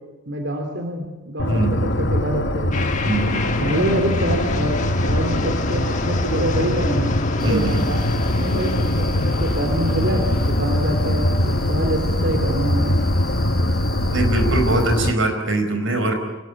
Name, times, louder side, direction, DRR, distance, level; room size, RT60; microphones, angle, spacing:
voice 1, 0.3-2.7 3.6-12.9, right 1 dB, 60° right, 3 dB, 3.1 m, -26 dB
sound 1, 1.4-15.1, left 1 dB, 60° left, 1.5 m, -22 dB
sound 2, 2.7-13.9, left 2 dB, 35° left, 1.7 m, -31 dB
voice 2, 3.1-3.5 7.4-7.8 14.1-16.1, right 2 dB, 75° right, 6 dB, 4.8 m, -22 dB
sound 3, 7.4-15.1, equal, ahead, 3.3 m, -33 dB
26.0 x 19.5 x 8.6 m, 1.1 s
head